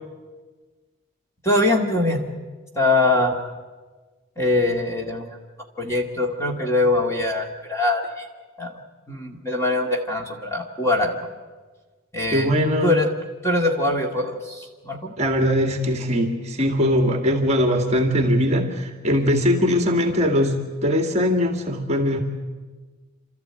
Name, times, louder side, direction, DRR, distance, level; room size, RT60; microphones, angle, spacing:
voice 1, 1.4-2.2 2.7-3.5 4.4-5.4 5.8-8.3 8.6-8.8 9.1-11.3 12.1-12.6 12.8-13.1 13.4-15.1 19.7-19.8, left 2 dB, 15° left, 1 dB, 2.2 m, -22 dB
voice 2, 12.3-13.0 15.2-22.2, equal, 30° right, 4 dB, 2.0 m, -21 dB
28.5 x 13.5 x 8.9 m, 1.3 s
head